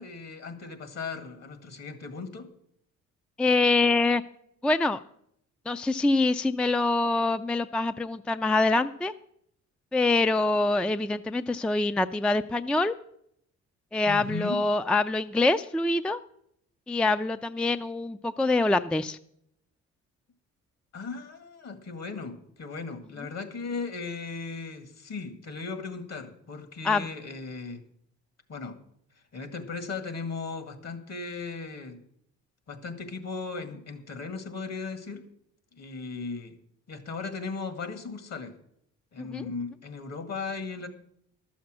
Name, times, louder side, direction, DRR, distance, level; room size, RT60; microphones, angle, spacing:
voice 1, 0.0-2.5 14.1-14.6 20.9-27.8 28.5-28.8 29.3-32.0 32.7-35.2 35.7-36.6 36.9-38.5 39.1-40.9, left 4 dB, 60° left, 1.9 m, -37 dB
voice 2, 3.4-4.2 4.6-5.0 5.7-9.1 9.9-12.9 13.9-16.2 16.9-19.2 26.8-27.1 39.2-39.4, left 3 dB, 5° left, 0.3 m, -25 dB
12.5 x 7.2 x 7.4 m
cardioid pair, 90°, 30 cm